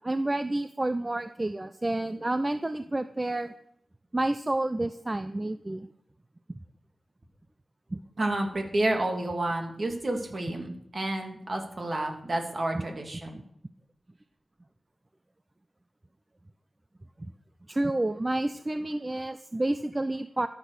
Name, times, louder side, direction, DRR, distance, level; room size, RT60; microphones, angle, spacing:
voice 1, 0.0-3.5 4.1-5.9 7.9-8.0 17.7-20.5, right 1 dB, 25° right, 11 dB, 0.6 m, -29 dB
voice 2, 8.2-13.4, right 1 dB, 45° right, 3 dB, 2.8 m, -30 dB
13.5 x 8.2 x 6.7 m, 0.72 s
wide cardioid pair, 70°, 0 cm